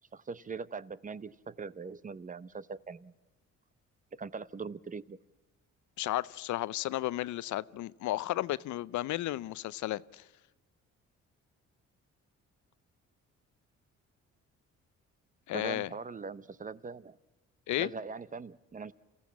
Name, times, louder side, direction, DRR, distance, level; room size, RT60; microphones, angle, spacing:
voice 1, 0.1-3.1 4.2-5.2 15.5-17.2 17.8-18.9, right 5 dB, 25° right, 0.6 m, -41 dB
voice 2, 6.0-10.2 15.5-15.9 17.7-17.9, left 15 dB, 75° left, 0.6 m, -33 dB
27.5 x 15.5 x 7.3 m
cardioid pair, 90°, 30 cm